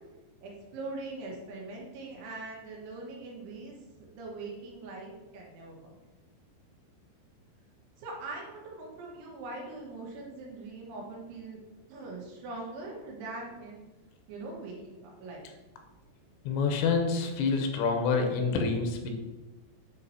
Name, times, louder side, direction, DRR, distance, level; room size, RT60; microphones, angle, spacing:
voice 1, 0.4-6.0 8.0-11.6 11.9-13.8 14.3-15.5, right 3 dB, 90° right, -2 dB, 3.6 m, -42 dB
voice 2, 16.5-19.1, left 4 dB, 85° left, 4 dB, 3.0 m, -27 dB
8.8 x 4.2 x 2.8 m, 1.1 s
omnidirectional pair, 5.3 m